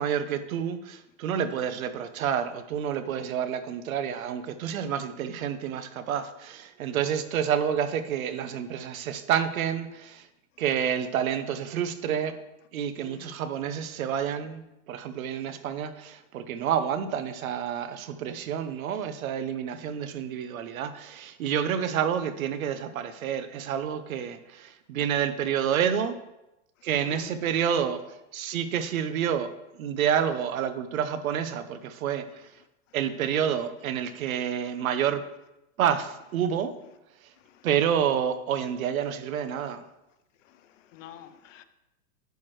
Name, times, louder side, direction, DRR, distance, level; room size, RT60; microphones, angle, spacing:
voice 1, 0.0-10.2 10.6-12.4 12.7-26.2 26.8-28.0 28.3-29.5 29.7-32.5 32.9-35.2 35.8-36.7 37.6-39.8, right 8 dB, 85° right, 0.8 m, -29 dB
voice 2, 13.0-13.3 27.0-27.3 37.7-37.8 40.9-41.6, left 11 dB, 65° left, 0.6 m, -46 dB
10.5 x 4.6 x 3.1 m
supercardioid pair, 175°, 40 cm